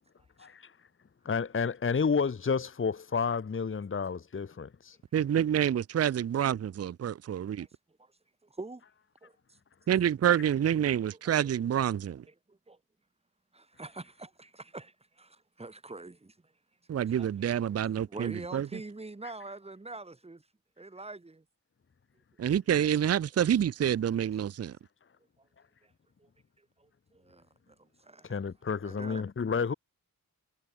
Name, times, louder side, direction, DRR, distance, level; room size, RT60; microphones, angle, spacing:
voice 1, 0.4-0.7 1.2-5.0 28.2-29.7, left 5 dB, 35° left, 1.2 m, -30 dB
voice 2, 5.1-7.7 9.9-12.2 16.9-18.7 22.4-24.7, right 9 dB, 45° right, 0.5 m, -27 dB
voice 3, 8.4-8.8 9.2-9.6 11.1-11.6 12.3-12.8 13.5-16.5 17.2-17.3 17.6-20.4 20.8-21.4 25.8-25.9 26.2-26.3 26.6-28.4 28.8-29.2, right 2 dB, 15° right, 1.7 m, -45 dB
wide cardioid pair, 175°, 36 cm